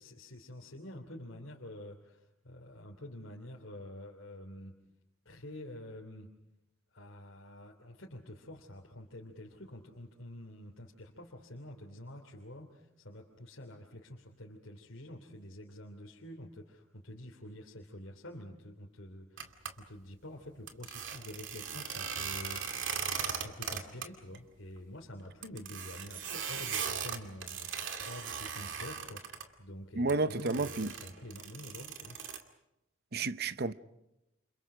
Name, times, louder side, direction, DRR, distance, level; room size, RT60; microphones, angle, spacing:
voice 1, 0.0-4.7 5.2-6.3 6.9-32.2, left 1 dB, 75° left, 3.0 m, -48 dB
sound 1, 19.4-19.7 20.7-24.1 24.3-24.4 24.8-24.9 25.4-29.4 30.1-32.4, right 7 dB, 70° right, 2.3 m, -38 dB
voice 2, 30.0-30.9 33.1-33.7, right 3 dB, 50° right, 0.8 m, -31 dB
29.5 x 28.0 x 5.0 m
head